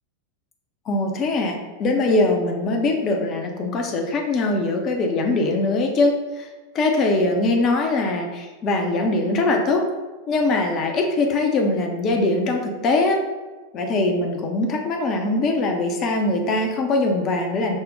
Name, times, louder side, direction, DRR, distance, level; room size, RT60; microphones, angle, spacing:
voice 1, 0.9-6.5 6.7-9.9 10.3-13.2 13.7-17.8, left 2 dB, 30° left, 2 dB, 0.5 m, -22 dB
5.1 x 2.1 x 3.7 m, 1.2 s
figure-of-eight pair, 90°, 0 cm